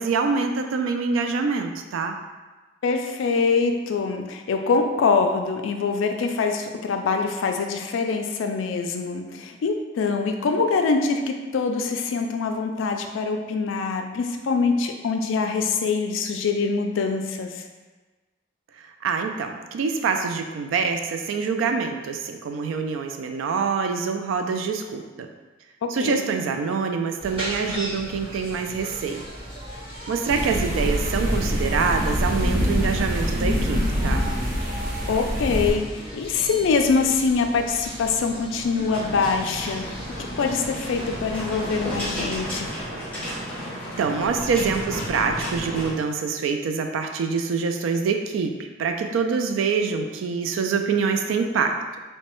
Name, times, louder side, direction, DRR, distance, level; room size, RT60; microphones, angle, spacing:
voice 1, 0.0-2.2 19.0-25.3 25.9-29.2 30.1-34.3 44.0-51.7, right 5 dB, 85° right, 5 dB, 0.3 m, -25 dB
voice 2, 2.8-17.6 25.8-26.2 35.1-40.0 40.4-42.7, left 4 dB, 75° left, 5 dB, 0.3 m, -24 dB
sound 1, 27.2-42.3, equal, 30° right, 1.3 m, -37 dB
sound 2, 30.3-35.7, equal, 45° right, 0.6 m, -25 dB
sound 3, 38.9-45.9, equal, 5° left, 0.8 m, -32 dB
3.0 x 2.1 x 3.0 m, 1.3 s
head